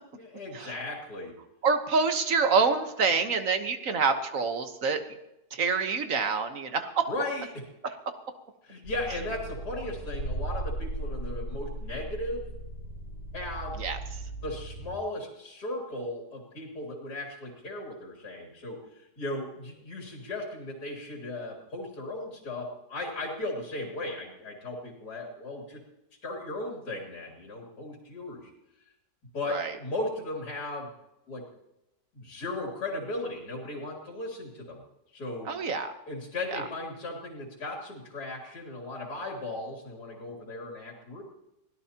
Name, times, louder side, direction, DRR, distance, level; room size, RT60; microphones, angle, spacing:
voice 1, 0.2-1.3 7.1-7.5 8.6-12.4 13.3-13.8 14.4-18.8 19.2-25.8 26.2-28.5 29.3-30.9 31.3-31.5 32.1-34.8 35.1-35.5 36.1-41.2, left 2 dB, 70° left, -1 dB, 3.4 m, -36 dB
voice 2, 1.6-5.0 5.5-7.1 13.8-14.0 29.5-29.7 35.4-35.9 36.5-36.6, right 5 dB, 55° right, 7 dB, 1.5 m, -26 dB
sound 1, 8.8-15.0, right 1 dB, 85° left, 3.5 m, -37 dB
23.0 x 17.0 x 2.9 m, 0.91 s
omnidirectional pair, 1.8 m